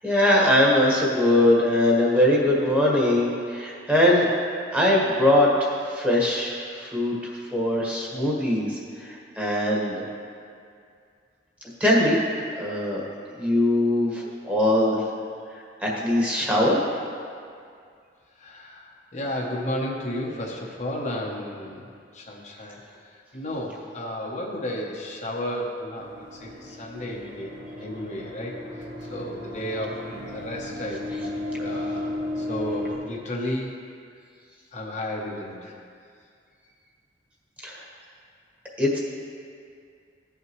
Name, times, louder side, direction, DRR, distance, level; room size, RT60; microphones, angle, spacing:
voice 1, 0.0-4.3 4.7-7.1 7.5-10.0 11.8-12.2 12.6-13.0 13.4-15.0 15.8-16.8 37.6-37.8 38.8-39.0, left 1 dB, 10° right, -4 dB, 1.5 m, -21 dB
voice 2, 18.4-21.8 22.1-22.8 23.3-27.5 27.8-28.6 29.1-31.3 31.6-33.7 34.7-35.7, left 1 dB, 45° left, -2 dB, 0.9 m, -33 dB
sound 1, 26.0-32.9, left 1 dB, 85° right, 2.2 m, -34 dB
16.0 x 5.7 x 3.1 m, 2.2 s
head